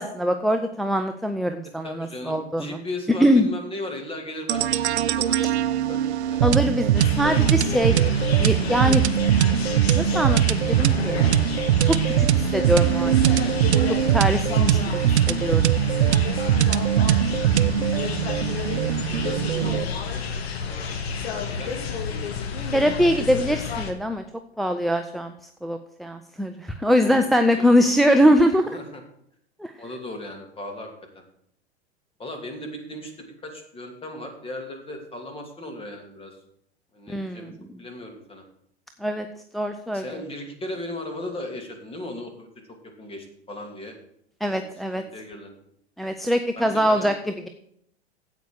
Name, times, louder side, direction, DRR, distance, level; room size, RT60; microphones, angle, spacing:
voice 1, 0.0-2.7 3.2-3.5 6.4-8.0 8.4-9.0 9.9-11.2 11.8-13.8 14.1-14.8 15.3-15.7 22.7-24.2 24.6-25.3 25.6-28.7 29.6-29.7 37.1-37.5 39.0-39.3 39.5-40.0 44.4-45.0 46.0-47.1, equal, ahead, 6 dB, 0.4 m, -22 dB
voice 2, 1.8-6.5 17.2-17.5 18.3-22.0 26.9-28.0 28.7-29.0 29.8-31.2 32.2-36.4 36.9-37.5 37.8-38.4 39.9-42.5 42.8-43.9 44.5-44.7 44.9-45.5 46.5-47.1, left 1 dB, 15° left, 4 dB, 2.7 m, -37 dB
sound 1, 4.5-19.8, right 11 dB, 75° right, 0.7 m, -21 dB
sound 2, 6.9-23.9, left 6 dB, 65° left, 2.0 m, -30 dB
9.3 x 8.3 x 6.4 m, 0.70 s
hypercardioid pair, 105°, 34 cm